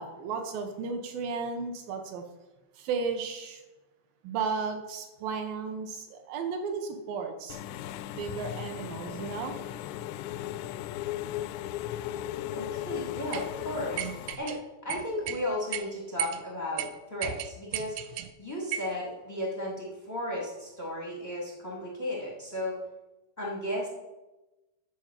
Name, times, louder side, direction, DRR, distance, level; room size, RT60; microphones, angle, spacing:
voice 1, 0.0-2.2 2.7-3.6 4.2-7.6 8.1-9.6, right 5 dB, 70° right, 5 dB, 2.3 m, -34 dB
Engine / Mechanisms, 7.5-14.4, left 12 dB, 85° left, 2.6 m, -37 dB
voice 2, 12.5-18.0 18.4-22.8 23.4-23.9, left 1 dB, 35° left, -2 dB, 0.6 m, -34 dB
sound 1, 13.3-13.5 14.0-14.6 14.9-15.4 15.7-15.8 16.2-16.4 16.8-16.9 17.2-18.3 18.7-18.9, right 12 dB, 90° right, 2.3 m, -34 dB
12.5 x 4.9 x 7.5 m, 1.0 s
omnidirectional pair, 5.2 m